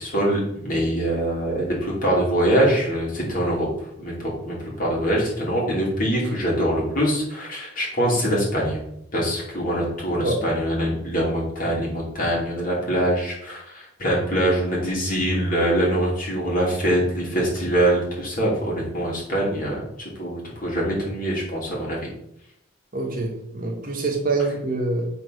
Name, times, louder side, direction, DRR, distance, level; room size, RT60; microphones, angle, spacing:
voice 1, 0.0-3.7 4.0-8.8 9.1-22.1, right 1 dB, 45° left, -4 dB, 2.8 m, -23 dB
voice 2, 22.9-25.1, right 3 dB, 45° right, -1 dB, 1.7 m, -25 dB
7.9 x 4.0 x 5.9 m, 0.79 s
head